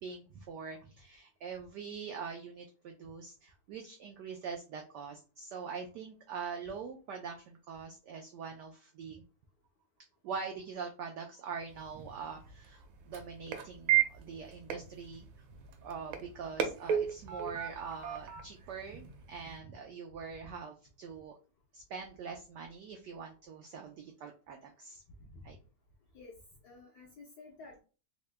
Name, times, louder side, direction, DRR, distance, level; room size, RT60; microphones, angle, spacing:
voice 1, 0.0-9.2 10.2-15.3 15.8-21.3 21.7-25.0 25.4-25.6, right 5 dB, 90° right, 3 dB, 0.9 m, -43 dB
sound 1, 11.7-19.6, right 10 dB, 75° right, 1.3 m, -36 dB
voice 2, 26.6-27.8, left 3 dB, 70° left, -1 dB, 0.9 m, -52 dB
3.7 x 2.1 x 3.2 m, 0.35 s
omnidirectional pair, 2.4 m